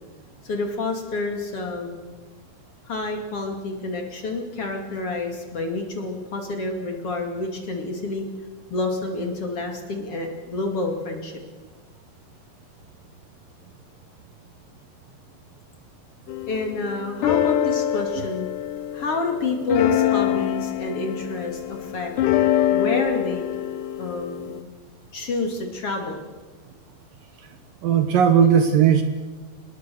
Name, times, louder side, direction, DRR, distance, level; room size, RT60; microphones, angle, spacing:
voice 1, 0.4-1.9 2.9-8.3 8.7-11.3 16.5-18.5 18.9-22.4 22.7-23.4 24.0-24.6 25.1-26.2, left 3 dB, 40° left, 3 dB, 2.8 m, -28 dB
sound 1, 16.3-24.6, left 12 dB, 75° left, 1.9 m, -25 dB
voice 2, 27.8-29.0, right 8 dB, 65° right, 8 dB, 2.6 m, -17 dB
26.0 x 20.0 x 7.0 m, 1.3 s
omnidirectional pair, 4.7 m